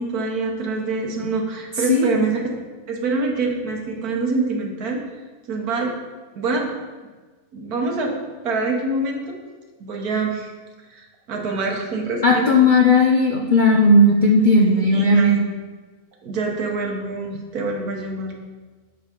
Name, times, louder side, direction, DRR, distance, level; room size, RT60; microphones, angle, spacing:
voice 1, 0.0-2.4 2.9-5.0 5.5-5.9 6.3-6.7 7.5-8.1 8.4-9.4 9.8-10.5 10.9-12.6 14.6-15.4 16.2-18.3, right 3 dB, 75° right, 1 dB, 1.7 m, -25 dB
voice 2, 12.2-15.4, left 1 dB, 55° left, 0 dB, 0.5 m, -15 dB
8.9 x 4.0 x 6.7 m, 1.3 s
omnidirectional pair, 1.6 m